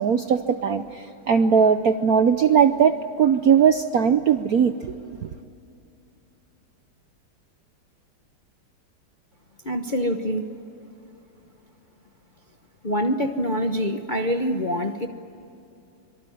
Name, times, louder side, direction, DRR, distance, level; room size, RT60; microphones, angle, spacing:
voice 1, 0.0-4.9 5.2-5.3, right 7 dB, 65° right, 9 dB, 0.9 m, -19 dB
voice 2, 9.6-10.5 12.8-15.1, equal, 35° left, 5 dB, 0.8 m, -25 dB
25.5 x 23.5 x 9.8 m, 2.6 s
omnidirectional pair, 2.4 m